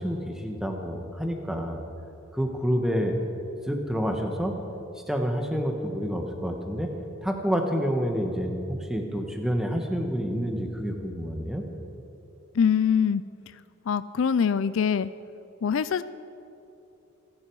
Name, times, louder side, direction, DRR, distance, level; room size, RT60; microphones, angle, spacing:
voice 1, 0.0-1.8 2.3-3.2 3.7-4.6 5.1-6.9 7.2-11.7, equal, ahead, 3 dB, 1.3 m, -28 dB
voice 2, 12.5-13.2 13.9-15.1 15.6-16.0, left 7 dB, 70° left, 15 dB, 0.4 m, -23 dB
27.0 x 10.5 x 4.7 m, 2.9 s
head